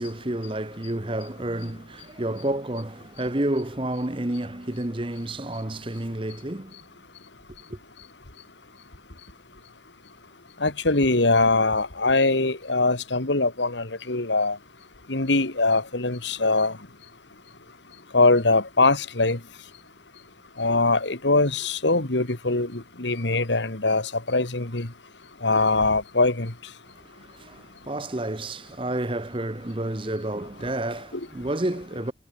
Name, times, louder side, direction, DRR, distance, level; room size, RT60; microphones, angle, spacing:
voice 1, 0.0-6.8 7.7-7.8 27.0-32.1, right 1 dB, 30° right, 1.1 m, -30 dB
voice 2, 10.6-14.6 15.1-16.8 18.1-19.4 20.6-24.9 25.4-26.5, left 3 dB, 70° left, 2.3 m, -22 dB
head